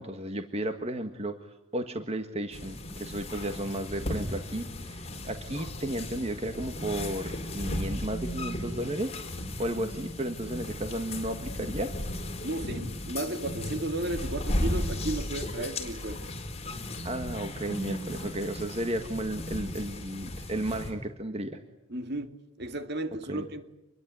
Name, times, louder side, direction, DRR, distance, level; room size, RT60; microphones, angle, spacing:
voice 1, 0.0-9.2 9.6-11.9 17.0-21.6 23.3-23.4, right 1 dB, 30° right, 1.6 m, -33 dB
sound 1, 2.5-20.9, left 1 dB, 30° left, 4.5 m, -35 dB
voice 2, 12.4-16.2 21.9-23.6, right 2 dB, 50° right, 2.3 m, -34 dB
27.0 x 22.0 x 9.4 m
head